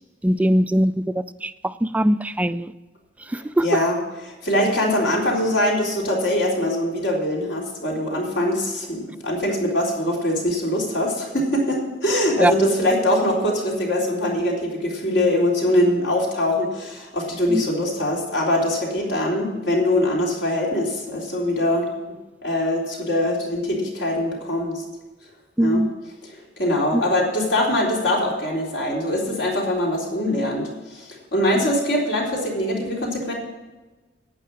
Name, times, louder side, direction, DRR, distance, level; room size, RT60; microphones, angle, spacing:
voice 1, 0.2-2.7 3.3-3.7 12.4-12.5 17.5-17.6 25.6-25.9 26.9-27.0, equal, 10° right, 13 dB, 0.3 m, -21 dB
voice 2, 3.3-4.0 4.3-21.9 22.4-24.8 25.6-25.8 26.2-26.3 26.6-33.3, left 1 dB, 70° left, -2 dB, 3.8 m, -22 dB
11.5 x 9.2 x 6.3 m, 1.2 s
head